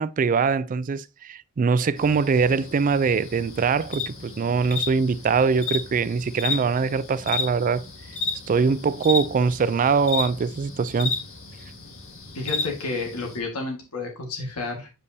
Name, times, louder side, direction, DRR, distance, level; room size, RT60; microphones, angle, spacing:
voice 1, 0.0-7.8 8.5-11.1, right 5 dB, 35° right, 0.3 m, -22 dB
sound 1, 2.0-13.4, left 4 dB, 60° left, 1.6 m, -33 dB
voice 2, 12.3-14.9, left 3 dB, 90° left, 1.8 m, -31 dB
8.0 x 5.2 x 2.7 m
head